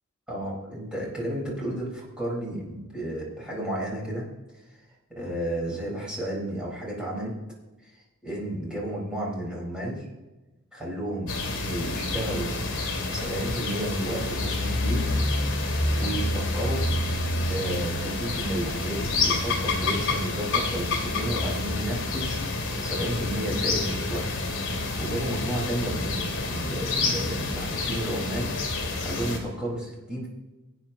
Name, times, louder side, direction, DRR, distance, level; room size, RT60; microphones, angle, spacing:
voice 1, 0.3-4.3 5.1-7.3 7.8-7.9 8.2-10.1 10.7-12.6 13.1-15.1 15.4-15.5 15.9-16.9 17.5-22.4 22.8-24.2 24.5-28.5 29.0-30.3, right 1 dB, 5° right, -5 dB, 4.2 m, -32 dB
sound 1, 11.3-29.4, left 2 dB, 60° left, 2.2 m, -28 dB
19.0 x 9.1 x 2.8 m, 1.1 s
head